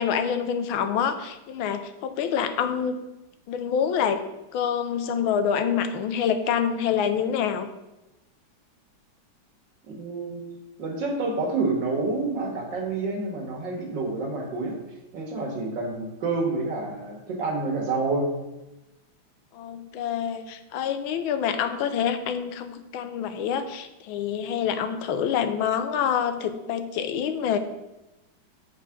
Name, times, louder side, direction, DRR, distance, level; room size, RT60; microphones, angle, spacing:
voice 1, 0.0-3.0 3.5-4.2 4.5-7.7 19.5-27.6, left 8 dB, 90° left, 10 dB, 1.5 m, -26 dB
voice 2, 9.8-10.4 10.8-14.7 15.1-18.3, right 3 dB, 65° right, 2 dB, 2.2 m, -28 dB
7.5 x 4.9 x 5.8 m, 0.99 s
omnidirectional pair, 2.2 m